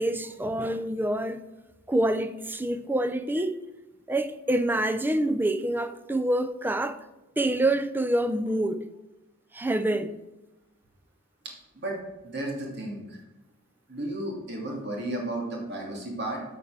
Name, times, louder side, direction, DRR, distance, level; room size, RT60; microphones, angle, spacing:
voice 1, 0.0-1.4 1.9-3.6 4.1-7.0 7.4-8.8 9.5-10.2, right 1 dB, 10° right, 0.5 m, -26 dB
voice 2, 11.7-13.2 13.9-16.4, right 1 dB, 55° right, 2.7 m, -33 dB
8.6 x 7.5 x 6.5 m
head